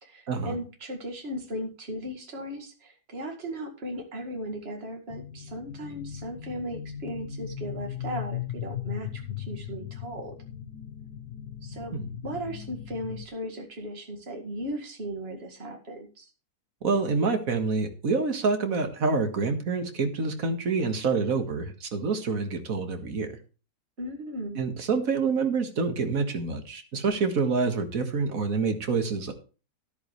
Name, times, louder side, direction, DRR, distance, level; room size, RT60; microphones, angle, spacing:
voice 1, 0.0-10.4 11.6-11.9 12.2-16.3 24.0-24.6, equal, 35° right, 3 dB, 2.3 m, -37 dB
sound 1, 5.1-13.3, left 10 dB, 70° left, 1.4 m, -38 dB
voice 2, 16.8-23.4 24.6-29.3, right 4 dB, 55° right, 6 dB, 2.1 m, -27 dB
13.0 x 11.0 x 3.2 m, 0.34 s
omnidirectional pair, 1.8 m